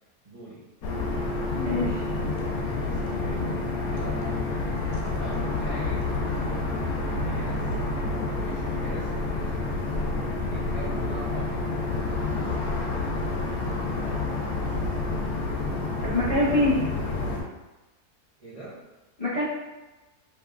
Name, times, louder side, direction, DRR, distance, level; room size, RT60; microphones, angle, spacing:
voice 1, 0.2-0.7 2.3-4.5 5.2-6.1 6.4-7.8 8.2-9.9 10.5-11.8 18.4-18.8, right 2 dB, 35° right, -10 dB, 0.6 m, -42 dB
sound 1, 0.8-17.4, left 3 dB, 80° left, 1.1 m, -29 dB
voice 2, 1.5-2.1 16.0-16.8 19.2-19.4, left 1 dB, 35° left, -12 dB, 0.6 m, -24 dB
3.3 x 2.9 x 2.3 m, 1.1 s
omnidirectional pair, 1.6 m